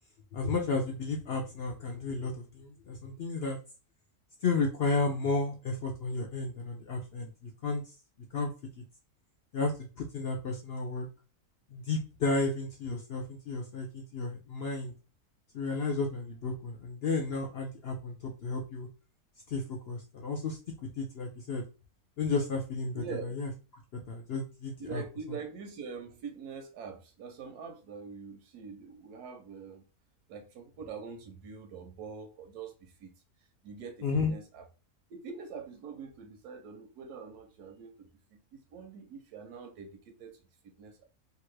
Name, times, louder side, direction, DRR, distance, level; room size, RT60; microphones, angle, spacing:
voice 1, 0.3-3.6 4.4-7.8 8.3-8.5 9.5-11.1 11.7-14.9 15.5-18.9 19.5-20.6 21.0-21.6 22.2-23.5 24.1-25.0 34.0-34.3, left 3 dB, 70° left, 0.5 m, -32 dB
voice 2, 22.9-23.3 24.8-29.8 30.3-33.1 33.6-34.7 35.1-40.4 40.8-41.1, right 6 dB, 85° right, 1.1 m, -44 dB
2.8 x 2.3 x 3.1 m
omnidirectional pair, 1.6 m